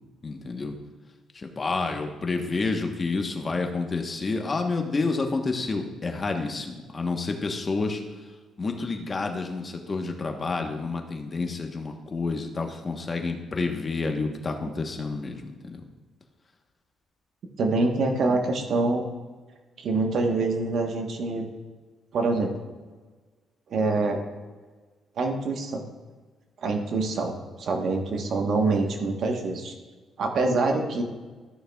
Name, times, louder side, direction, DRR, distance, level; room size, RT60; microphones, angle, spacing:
voice 1, 0.2-0.7 1.3-8.0 8.6-15.8, left 3 dB, 35° left, 4 dB, 1.0 m, -29 dB
voice 2, 17.6-19.0 19.8-21.5 22.1-22.5 23.7-24.2 25.2-25.8 26.6-29.7 30.2-31.0, right 3 dB, 65° right, 3 dB, 1.1 m, -25 dB
13.5 x 6.5 x 2.3 m, 1.4 s
cardioid pair, 90°, 0 cm